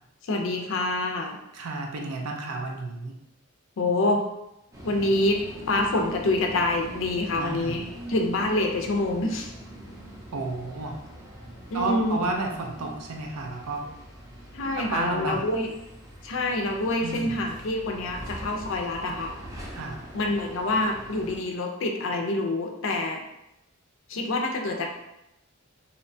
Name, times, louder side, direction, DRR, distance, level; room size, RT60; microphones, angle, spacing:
voice 1, 0.2-1.4 3.8-4.2 4.8-7.8 8.1-9.5 11.7-12.2 14.5-15.7 16.2-19.3 20.1-23.2 24.1-24.9, left 2 dB, 60° left, 3 dB, 0.4 m, -26 dB
voice 2, 1.5-3.1 7.4-7.8 10.3-11.0 11.7-13.9 14.8-15.5 17.0-17.3 19.7-20.0, right 2 dB, 90° right, 1 dB, 0.5 m, -31 dB
sound 1, 4.7-21.4, right 1 dB, 15° right, 0.4 m, -43 dB
2.8 x 2.1 x 2.6 m, 0.86 s
head